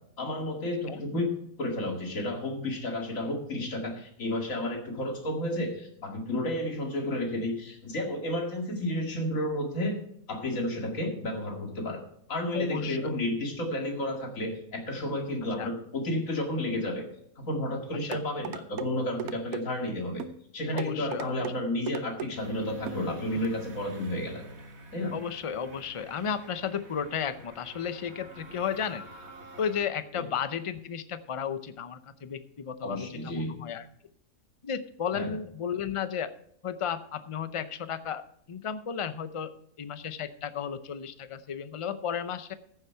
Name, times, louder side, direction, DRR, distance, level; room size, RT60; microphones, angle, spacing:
voice 1, 0.2-10.0 10.3-12.0 12.3-17.1 17.4-20.2 20.5-24.4 24.9-25.2 30.1-30.2 32.8-33.5 35.1-35.3, left 1 dB, 70° left, 2 dB, 2.5 m, -31 dB
voice 2, 12.5-13.1 15.6-15.7 18.0-18.2 20.7-21.5 23.3-23.4 25.1-29.0 29.6-33.9 34.6-36.3 36.6-38.2 38.5-39.5 39.8-42.5, left 7 dB, 40° left, 12 dB, 0.4 m, -34 dB
sound 1, 18.1-18.9 19.2-19.6 20.2-20.4 20.8-21.6 21.9-22.3 22.9-23.0 23.4-23.5, right 9 dB, 85° right, 1.2 m, -36 dB
sound 2, 22.4-29.8, right 2 dB, 50° right, 1.8 m, -47 dB
15.0 x 7.3 x 4.5 m, 0.70 s
omnidirectional pair, 1.5 m